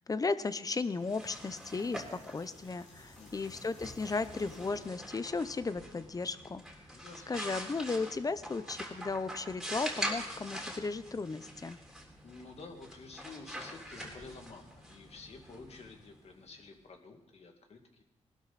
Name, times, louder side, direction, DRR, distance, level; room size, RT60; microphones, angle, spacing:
voice 1, 0.1-6.6 7.3-11.8, left 4 dB, 30° left, 13 dB, 0.8 m, -35 dB
sound 1, 0.8-5.1, left 3 dB, 80° left, 5.1 m, -61 dB
sound 2, 0.9-16.6, equal, ahead, 3.4 m, -44 dB
voice 2, 3.2-3.6 6.9-7.4 12.2-18.0, left 3 dB, 60° left, 4 dB, 2.2 m, -51 dB
18.5 x 12.5 x 4.2 m, 0.94 s
cardioid pair, 85°, 12 cm